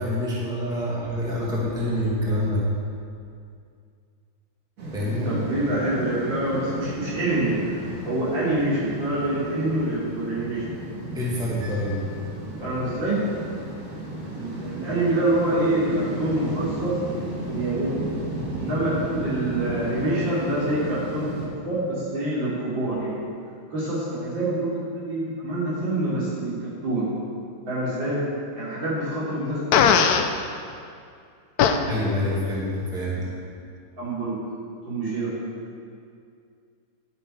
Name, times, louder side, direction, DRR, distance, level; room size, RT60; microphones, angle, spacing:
voice 1, 0.0-2.6 4.9-5.4 11.1-12.0 31.8-33.3, left 1 dB, ahead, -6 dB, 1.6 m, -26 dB
sound 1, 4.8-21.5, right 1 dB, 45° right, 2.0 m, -34 dB
voice 2, 5.0-10.7 12.6-13.2 14.4-17.0 17.4-18.1 18.6-21.3 21.6-23.3 23.7-27.1 27.7-28.2 28.6-30.1 31.7-32.2 33.1-33.2 34.0-34.3 34.8-35.3, right 1 dB, 70° right, -9 dB, 3.9 m, -26 dB
Fart, 29.7-30.3 31.6-31.8, left 7 dB, 75° left, 0.9 m, -17 dB
10.5 x 8.9 x 4.6 m, 2.3 s
omnidirectional pair, 2.2 m